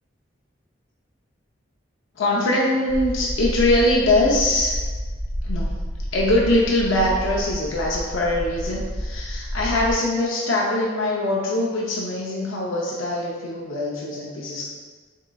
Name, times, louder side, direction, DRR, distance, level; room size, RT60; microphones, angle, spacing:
voice 1, 2.2-4.8 5.4-5.7 6.1-14.7, left 1 dB, 85° left, -4 dB, 0.5 m, -22 dB
sound 1, 2.9-9.9, equal, 15° left, 0.6 m, -29 dB
4.0 x 3.7 x 2.2 m, 1.4 s
head